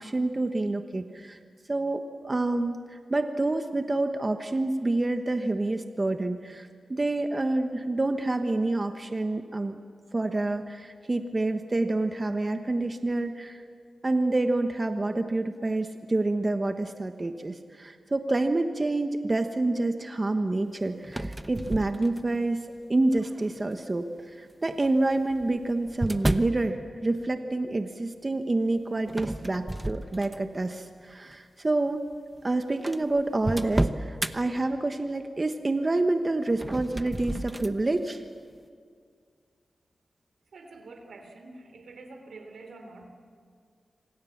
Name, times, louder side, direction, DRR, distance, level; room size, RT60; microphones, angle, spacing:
voice 1, 0.0-1.4 1.7-9.8 10.1-13.6 14.0-22.6 22.9-32.0 32.4-38.2, right 2 dB, 30° right, 6 dB, 1.2 m, -28 dB
sound 1, 21.0-22.5 23.2-23.6 24.7-26.6 29.1-30.6 31.1-31.4 32.1-32.2 32.4-32.5 32.8-34.3 36.5-37.8, right 1 dB, 15° right, 1.0 m, -32 dB
voice 2, 40.5-43.1, right 3 dB, 85° right, 6 dB, 3.4 m, -46 dB
26.5 x 26.0 x 7.3 m, 2.1 s
cardioid pair, 70°, 0 cm